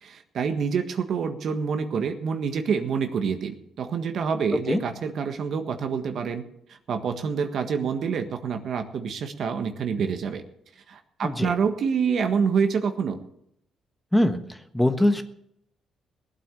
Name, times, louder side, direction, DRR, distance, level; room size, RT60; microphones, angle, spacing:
voice 1, 0.0-6.5 6.9-10.4 10.9-13.2, right 6 dB, 60° right, 7 dB, 1.6 m, -27 dB
voice 2, 11.2-11.5 14.1-15.2, left 1 dB, 5° left, 7 dB, 1.3 m, -22 dB
18.5 x 8.6 x 6.8 m, 0.74 s
cardioid pair, 90°, 0 cm